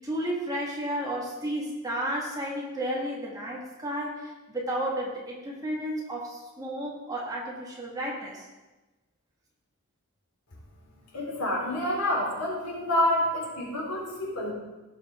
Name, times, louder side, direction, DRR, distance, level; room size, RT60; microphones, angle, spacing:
voice 1, 0.0-4.3 4.5-8.4, right 1 dB, 15° right, -3 dB, 2.0 m, -32 dB
voice 2, 11.1-14.5, left 1 dB, 90° left, -4 dB, 3.9 m, -28 dB
17.0 x 6.9 x 3.7 m, 1.1 s
head